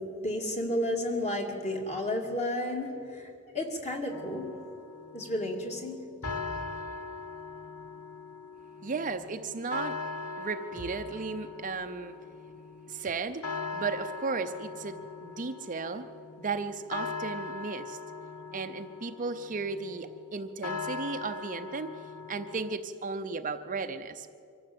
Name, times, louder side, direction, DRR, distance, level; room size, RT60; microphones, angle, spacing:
voice 1, 0.0-4.5 5.1-6.3, left 1 dB, 30° left, 2 dB, 2.3 m, -32 dB
sound 1, 4.1-22.8, left 4 dB, 80° left, 1.0 m, -41 dB
voice 2, 8.8-10.0 10.4-12.1 12.9-13.5 13.7-16.1 16.4-18.0 18.5-21.9 22.3-24.3, right 4 dB, 35° right, 8 dB, 0.6 m, -35 dB
24.0 x 14.5 x 7.8 m, 2.6 s
head